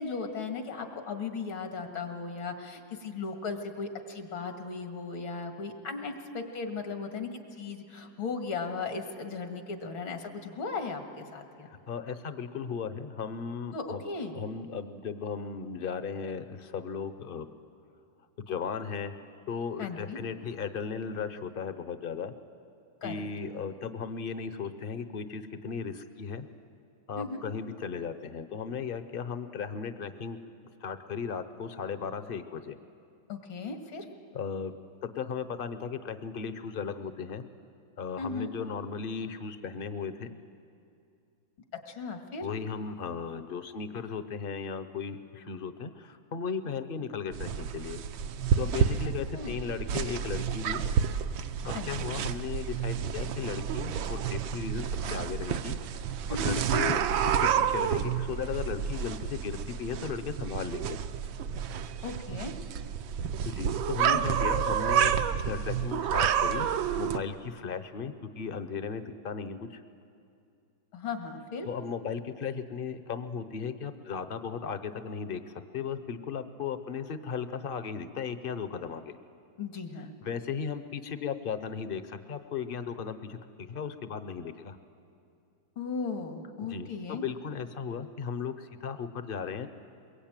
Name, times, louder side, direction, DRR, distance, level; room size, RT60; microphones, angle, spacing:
voice 1, 0.0-11.7 13.7-14.4 19.8-20.2 23.0-23.2 27.2-27.4 33.3-34.1 38.2-38.5 41.9-42.5 49.3-49.6 51.7-52.1 56.3-56.6 62.0-62.5 64.0-64.4 70.9-71.7 79.6-80.1 85.8-87.2, left 4 dB, 85° left, 5 dB, 2.7 m, -37 dB
voice 2, 11.7-14.0 14.3-17.5 18.4-19.1 19.5-22.3 23.0-26.5 27.1-30.4 30.8-32.8 34.3-34.7 35.0-37.4 38.0-40.4 42.4-48.0 48.6-50.8 51.6-55.8 56.3-61.0 63.4-65.2 65.4-66.7 66.9-69.8 71.6-79.2 80.2-84.8 86.7-89.7, left 6 dB, 50° left, 11 dB, 0.7 m, -36 dB
sound 1, 47.3-67.2, right 8 dB, 80° right, 1.5 m, -30 dB
22.5 x 22.5 x 9.0 m, 2.5 s
omnidirectional pair, 2.1 m